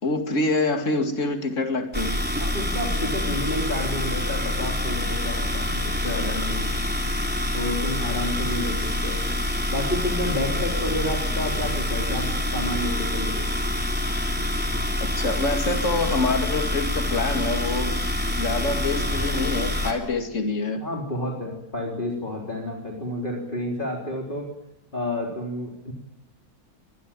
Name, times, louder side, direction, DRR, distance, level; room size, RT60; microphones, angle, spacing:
voice 1, 0.0-2.2 15.0-18.0 18.4-20.8, left 3 dB, 50° left, 6 dB, 2.8 m, -26 dB
sound 1, 1.9-19.9, left 1 dB, 5° right, 3.4 m, -26 dB
voice 2, 2.4-6.9 7.5-9.2 9.7-13.5 20.8-24.5 24.9-25.9, left 1 dB, 30° left, 0 dB, 3.9 m, -30 dB
25.5 x 20.5 x 9.0 m, 0.80 s
omnidirectional pair, 1.6 m